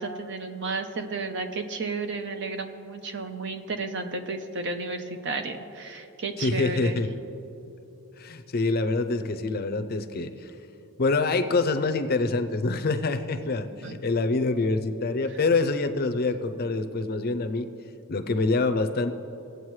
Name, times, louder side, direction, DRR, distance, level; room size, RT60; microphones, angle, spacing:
voice 1, 0.0-7.0 13.8-13.9, right 3 dB, 55° right, 6 dB, 0.7 m, -32 dB
voice 2, 6.4-7.1 8.2-10.5 11.0-17.7 18.1-19.1, left 3 dB, 45° left, 8 dB, 0.5 m, -26 dB
19.0 x 7.9 x 3.2 m, 2.9 s
head